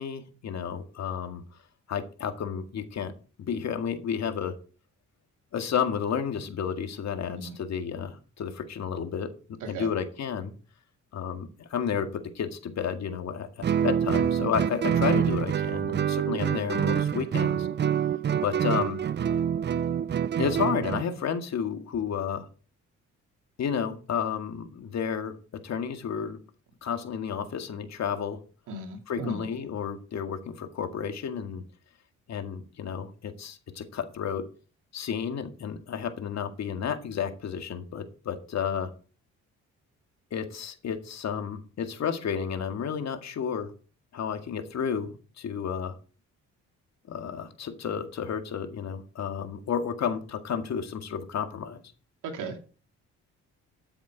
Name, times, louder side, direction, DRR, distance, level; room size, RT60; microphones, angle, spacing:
voice 1, 0.0-1.4 1.9-3.1 3.5-4.5 5.5-9.3 9.7-10.5 11.1-17.7 18.4-19.0 20.4-22.5 23.6-25.4 25.6-26.4 26.8-28.4 29.1-31.6 32.3-34.4 34.9-38.9 40.3-43.7 44.1-46.0 47.1-51.8, left 7 dB, 60° left, 2.0 m, -31 dB
Guitar, 13.6-21.1, right 9 dB, 35° right, 0.5 m, -26 dB
voice 2, 28.7-29.5 52.2-52.6, right 3 dB, 80° right, 2.5 m, -36 dB
13.5 x 7.1 x 4.6 m
cardioid pair, 90°, 30 cm